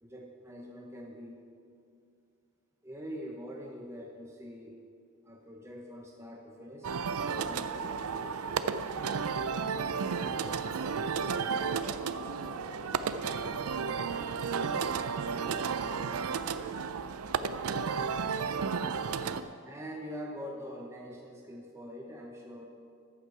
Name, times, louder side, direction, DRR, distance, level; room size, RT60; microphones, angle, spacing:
voice 1, 0.0-1.4 2.8-4.8 5.2-8.6 19.2-22.7, equal, 15° right, -1 dB, 0.8 m, -44 dB
sound 1, 6.8-19.4, right 6 dB, 90° right, 0.5 m, -33 dB
voice 2, 9.8-16.1, right 1 dB, 65° right, -2 dB, 2.5 m, -49 dB
14.0 x 8.6 x 4.7 m, 2.4 s
head